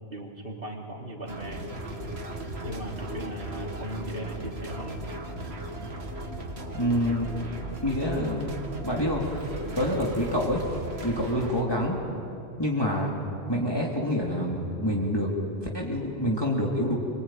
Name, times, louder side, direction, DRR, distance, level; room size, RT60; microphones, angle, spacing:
voice 1, 0.1-1.7 2.6-4.9, right 1 dB, 60° right, 0 dB, 3.4 m, -38 dB
sound 1, 1.3-11.6, right 1 dB, 75° right, 2.3 m, -36 dB
voice 2, 6.7-7.4 7.8-10.6 11.0-12.0 12.6-13.1 13.5-15.3 15.6-17.0, equal, 25° left, -3 dB, 3.0 m, -27 dB
24.5 x 24.0 x 9.2 m, 2.7 s
omnidirectional pair, 1.1 m